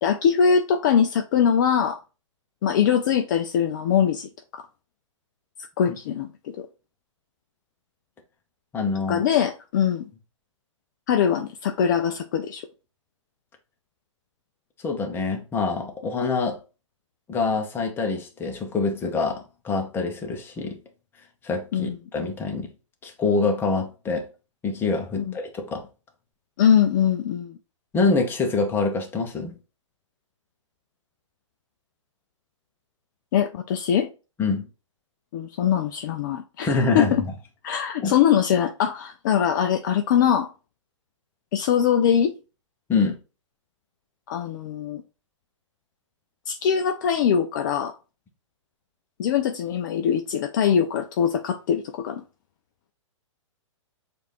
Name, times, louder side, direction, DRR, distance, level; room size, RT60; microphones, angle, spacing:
voice 1, 0.0-2.0 2.6-4.7 5.8-6.3 6.6-6.7 9.1-10.1 11.1-12.6 21.7-22.0 25.2-25.3 26.6-27.6 33.3-34.1 35.3-37.2 37.6-40.5 41.5-42.3 44.3-45.0 46.5-48.0 49.2-52.2, left 8 dB, 40° left, 0.4 m, -22 dB
voice 2, 8.7-9.2 14.8-16.6 17.3-20.8 21.4-22.7 23.0-24.3 24.6-25.8 27.9-29.5 34.4-34.7 36.6-37.1 38.0-38.1 42.9-43.2, left 4 dB, 15° left, 0.8 m, -25 dB
6.4 x 2.5 x 3.0 m
figure-of-eight pair, 115°, 16 cm